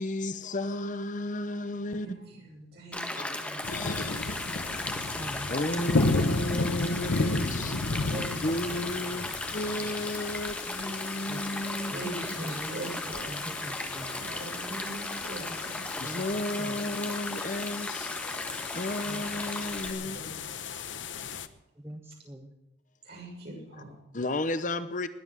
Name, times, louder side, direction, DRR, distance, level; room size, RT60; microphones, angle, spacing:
voice 1, 0.0-2.1 3.1-4.1 5.5-8.1 8.4-12.1 16.0-20.2 24.1-25.1, left 1 dB, 40° left, 12 dB, 0.8 m, -33 dB
voice 2, 1.9-4.1 8.0-9.2 11.8-13.5 14.0-15.9 20.0-20.3 20.7-20.8 23.0-24.0, right 1 dB, 55° right, -1 dB, 6.4 m, -42 dB
Stream, 2.9-19.9, left 1 dB, 5° left, 1.4 m, -37 dB
sound 1, 3.6-21.5, left 3 dB, 75° left, 0.9 m, -34 dB
voice 3, 4.7-5.6 8.1-8.2 11.3-11.4 11.9-12.0 12.4-12.7 13.3-14.2 16.0-16.2 16.6-16.7 19.1-19.2 21.8-22.5, right 1 dB, 15° right, 4 dB, 1.1 m, -42 dB
20.5 x 7.8 x 7.6 m, 0.95 s
head